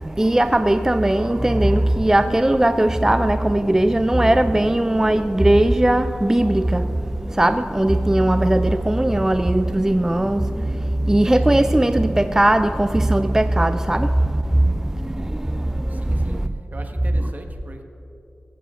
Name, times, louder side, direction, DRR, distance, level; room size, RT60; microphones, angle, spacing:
voice 1, 0.0-16.5 17.1-17.3, right 1 dB, 15° right, 0.4 m, -19 dB
voice 2, 15.9-16.4 16.7-17.8, right 2 dB, 45° right, 1.4 m, -40 dB
16.5 x 15.5 x 3.8 m
wide cardioid pair, 70°, 4 cm